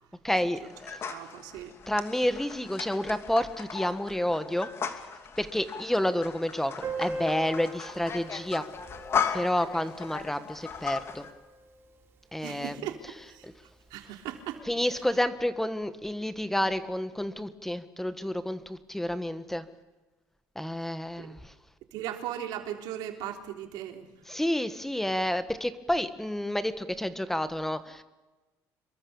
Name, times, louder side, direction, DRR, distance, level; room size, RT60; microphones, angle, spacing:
voice 1, 0.2-1.0 1.9-4.7 5.4-6.7 7.0-8.6 9.3-11.2 12.3-12.7 13.4-13.5 14.7-19.6 20.5-21.5 24.3-28.0, left 1 dB, 5° left, 11 dB, 1.3 m, -29 dB
sound 1, 0.7-11.3, left 7 dB, 35° left, 2.8 m, -37 dB
voice 2, 1.1-1.7 12.4-13.0 13.3-13.5 13.9-14.6 21.2-21.3 21.9-24.1, right 11 dB, 80° right, 4 dB, 3.7 m, -37 dB
Piano, 6.8-12.2 12.4-12.5 12.8-12.9 13.2-13.3 14.1-14.3, right 2 dB, 35° right, 8.0 m, -41 dB
27.0 x 23.0 x 7.2 m, 1.2 s
cardioid pair, 130°, 7 cm